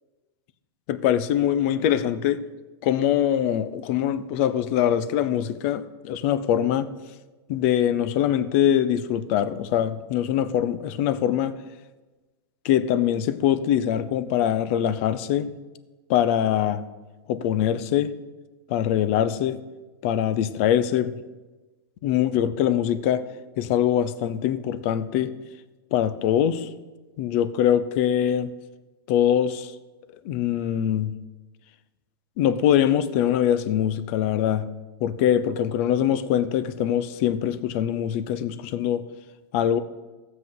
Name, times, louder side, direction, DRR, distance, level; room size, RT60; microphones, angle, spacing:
voice 1, 0.9-2.4 2.8-6.9 7.5-11.6 12.6-15.5 16.1-16.8 17.3-18.1 18.7-19.6 20.0-21.1 22.0-23.2 23.6-25.3 25.9-26.7 27.2-28.5 29.1-29.7 30.2-31.1 32.4-34.7 35.0-39.0 39.5-39.8, left 10 dB, 35° left, 14 dB, 0.5 m, -23 dB
15.0 x 7.7 x 3.8 m, 1.2 s
supercardioid pair, 165°, 13 cm